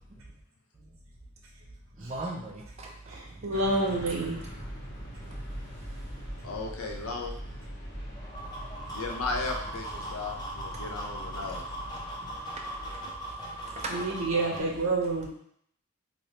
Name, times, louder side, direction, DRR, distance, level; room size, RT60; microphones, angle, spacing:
voice 1, 2.0-3.5 3.8-4.3 5.2-5.4 5.8-6.0 8.1-8.2 8.5-8.7 10.0-10.3 10.7-10.8 11.4-11.6 12.2-12.3 12.9-13.1 13.4-14.7, right 2 dB, 30° right, 0 dB, 0.5 m, -41 dB
voice 2, 3.1-4.5 13.9-15.3, right 2 dB, 75° right, -1 dB, 0.8 m, -29 dB
sound 1, 3.5-13.0, equal, 40° left, 1.5 m, -42 dB
voice 3, 6.4-7.3 8.9-11.6, left 3 dB, 80° left, 1 dB, 0.6 m, -35 dB
sound 2, 8.1-14.6, right 1 dB, 20° left, 0.6 m, -39 dB
3.2 x 3.0 x 2.8 m, 0.68 s
head